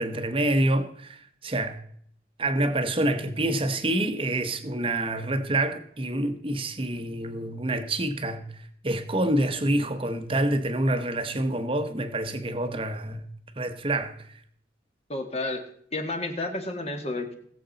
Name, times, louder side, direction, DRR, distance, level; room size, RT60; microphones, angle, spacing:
voice 1, 0.0-1.8 2.4-13.2 13.6-14.4, right 1 dB, 30° right, 1.0 m, -27 dB
voice 2, 15.1-15.6 15.9-17.4, left 2 dB, 35° left, 1.6 m, -31 dB
19.5 x 7.6 x 4.0 m
head